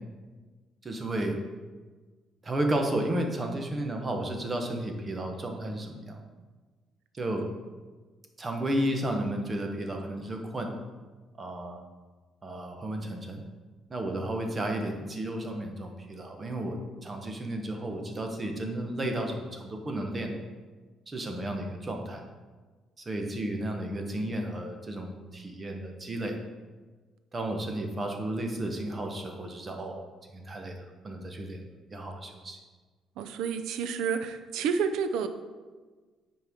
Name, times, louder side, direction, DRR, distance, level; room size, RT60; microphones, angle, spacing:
voice 1, 0.8-1.4 2.4-6.2 7.1-7.5 8.4-10.7 11.4-11.8 12.4-13.4 13.9-20.4 21.1-22.2 23.1-26.4 27.3-30.0 30.3-31.6 31.9-32.6, right 1 dB, 25° right, 3 dB, 0.9 m, -33 dB
voice 2, 33.2-35.3, right 6 dB, 85° right, 9 dB, 0.5 m, -30 dB
9.6 x 4.4 x 3.6 m, 1.4 s
cardioid pair, 150°, 0 cm